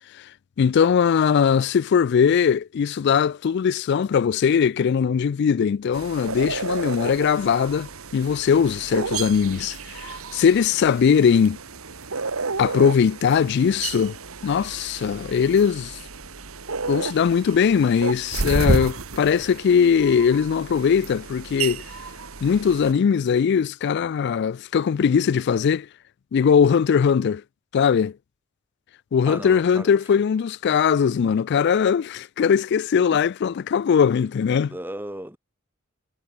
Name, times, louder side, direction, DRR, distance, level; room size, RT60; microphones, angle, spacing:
voice 1, 0.6-11.6 12.6-14.2 14.4-16.0 16.9-21.8 22.4-25.9 26.3-27.4 27.7-28.1 29.1-34.7, left 7 dB, 55° left, 0.3 m, -20 dB
sound 1, 5.9-22.9, right 3 dB, 90° right, 1.9 m, -31 dB
voice 2, 29.3-30.1 33.1-33.2 34.7-35.4, right 1 dB, 10° right, 2.2 m, -36 dB
head